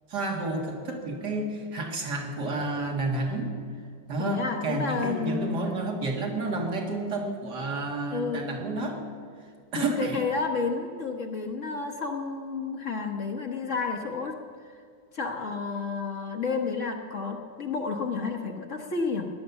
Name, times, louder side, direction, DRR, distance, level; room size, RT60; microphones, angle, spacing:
voice 1, 0.1-3.5 4.1-9.0 9.7-10.2, right 2 dB, 70° right, 1 dB, 2.5 m, -30 dB
voice 2, 4.2-5.7 8.1-8.5 9.7-14.4 15.1-19.3, left 4 dB, 45° left, 3 dB, 1.4 m, -31 dB
17.5 x 11.0 x 7.1 m, 2.2 s
omnidirectional pair, 1.9 m